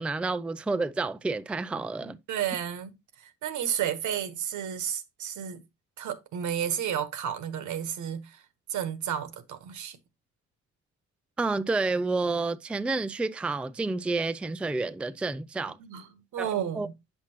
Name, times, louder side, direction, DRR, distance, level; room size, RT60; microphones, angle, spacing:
voice 1, 0.0-2.2 11.4-15.8 16.4-16.5 16.8-16.9, right 3 dB, 5° right, 0.3 m, -29 dB
voice 2, 2.0-3.0 3.2-5.6 6.0-8.4 8.7-10.0 15.8-16.9, right 9 dB, 75° right, 1.2 m, -32 dB
8.6 x 5.8 x 2.9 m
cardioid pair, 90°, 30 cm